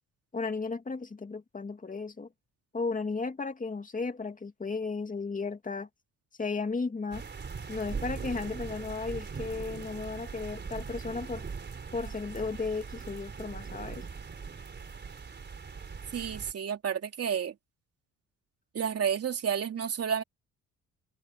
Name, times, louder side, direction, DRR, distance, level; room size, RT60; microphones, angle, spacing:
voice 1, 0.3-2.3 2.7-5.9 6.4-7.2 7.7-11.4 11.9-14.0, left 4 dB, 25° left, 2.7 m, -34 dB
sound 1, 7.1-16.5, right 5 dB, 35° right, 4.1 m, -40 dB
voice 2, 16.1-17.5 18.7-20.2, right 7 dB, 50° right, 3.1 m, -30 dB
cardioid pair, 90°, 30 cm